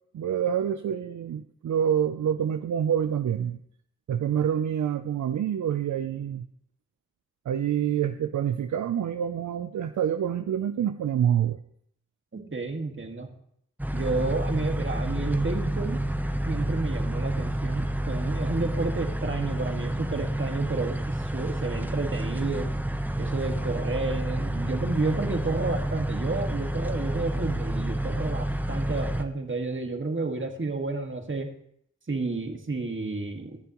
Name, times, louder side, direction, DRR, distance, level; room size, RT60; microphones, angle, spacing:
voice 1, 0.1-3.6 4.1-6.5 7.5-11.6, right 9 dB, 70° right, 9 dB, 0.5 m, -27 dB
voice 2, 12.3-13.3 13.9-16.0 16.5-22.7 23.2-31.5 32.1-33.6, right 3 dB, 40° right, 4 dB, 1.9 m, -31 dB
sound 1, 13.8-29.2, right 1 dB, 5° right, 0.9 m, -29 dB
19.5 x 6.8 x 3.0 m, 0.68 s
cardioid pair, 40°, 30 cm